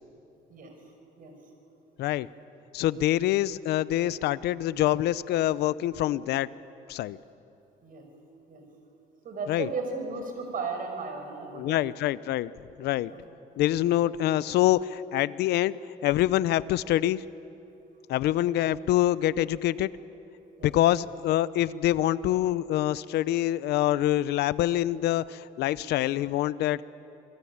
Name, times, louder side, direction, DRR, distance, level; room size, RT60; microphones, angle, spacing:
voice 1, 2.7-6.5 6.9-7.2 9.5-9.7 11.5-12.5 12.8-13.1 13.6-15.8 16.0-17.2 18.1-19.9 20.6-26.8, left 13 dB, 75° left, 17 dB, 0.7 m, -25 dB
voice 2, 9.2-11.8 13.1-13.2 20.6-20.7, right 4 dB, 55° right, 4 dB, 6.0 m, -35 dB
28.5 x 20.5 x 8.8 m, 2.8 s
cardioid pair, 110°, 17 cm